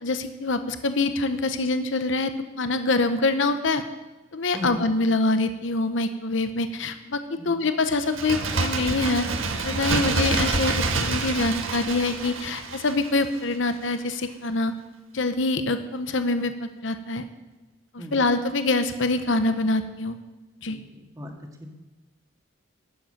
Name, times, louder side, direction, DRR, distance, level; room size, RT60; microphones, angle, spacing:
voice 1, 0.0-3.8 4.3-7.2 7.4-9.3 9.6-14.7 15.1-17.2 17.9-20.2 20.6-20.8, left 2 dB, 70° left, 9 dB, 0.9 m, -25 dB
voice 2, 4.5-4.8 7.4-7.5 18.0-18.2 20.7-20.8 21.2-21.3 21.6-21.7, left 1 dB, 15° right, 1 dB, 1.9 m, -36 dB
Bird, 8.0-13.6 13.8-13.9, right 3 dB, 85° right, 1.5 m, -27 dB
13.0 x 7.8 x 8.8 m, 1.1 s
head